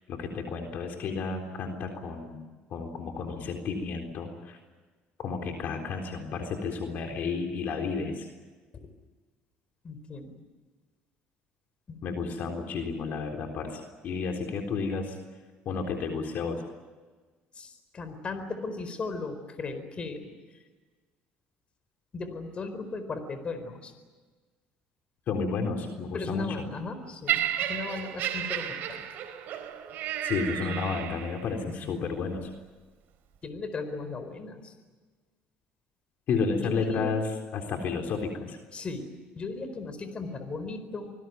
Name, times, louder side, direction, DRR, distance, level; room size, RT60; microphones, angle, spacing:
voice 1, 0.0-2.4 2.7-4.6 5.2-8.3 12.0-15.2 15.7-16.6 25.3-26.5 30.2-32.5 36.3-38.6, left 4 dB, 55° left, 3 dB, 3.8 m, -32 dB
voice 2, 9.8-10.4 11.9-12.0 12.5-12.7 17.5-20.6 22.1-23.9 26.1-29.0 30.6-31.2 31.6-32.0 33.4-34.7 36.6-37.1 38.7-41.1, left 3 dB, 30° left, 10 dB, 4.5 m, -37 dB
Laughter, 27.3-31.5 32.3-32.5, right 11 dB, 60° right, 4.3 m, -32 dB
26.5 x 20.5 x 9.3 m, 1.4 s
cardioid pair, 115°, 3 cm